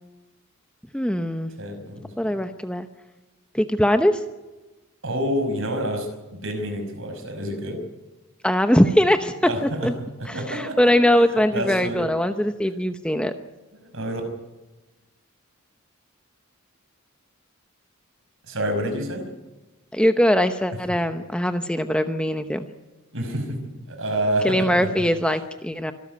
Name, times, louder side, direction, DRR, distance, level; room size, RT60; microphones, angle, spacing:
voice 1, 0.9-1.5 2.2-2.9 3.5-4.2 8.4-9.3 9.8-9.9 10.3-13.3 19.9-22.7 24.4-25.9, equal, 5° left, 8 dB, 0.8 m, -21 dB
voice 2, 1.6-2.1 5.0-7.8 9.4-9.9 10.2-10.8 11.5-12.1 13.8-14.2 18.4-19.3 23.1-23.6 23.9-24.9, right 1 dB, 60° right, 5 dB, 5.4 m, -28 dB
25.5 x 13.0 x 9.3 m, 1.1 s
head